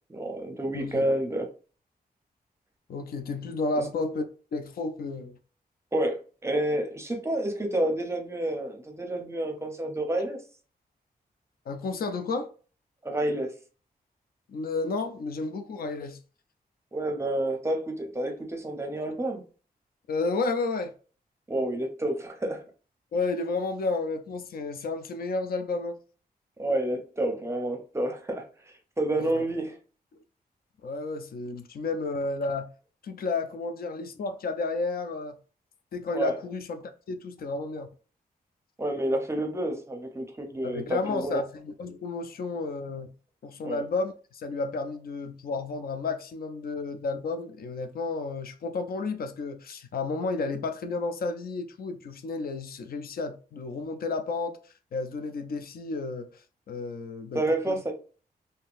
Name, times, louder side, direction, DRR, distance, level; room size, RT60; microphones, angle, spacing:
voice 1, 0.1-1.5 3.7-3.9 5.9-10.4 13.0-13.5 16.9-19.4 21.5-22.6 26.6-29.8 36.1-36.3 38.8-41.4 43.6-43.8 57.3-57.9, right 1 dB, 15° right, 0.6 m, -29 dB
voice 2, 0.7-1.1 2.9-4.2 4.5-5.4 11.7-12.5 14.5-16.2 20.1-20.9 23.1-26.0 29.2-29.4 30.8-32.7 33.0-35.4 35.9-37.9 40.6-43.1 43.4-57.8, left 3 dB, 70° left, 0.4 m, -32 dB
3.6 x 2.7 x 2.4 m
wide cardioid pair, 170°, 16 cm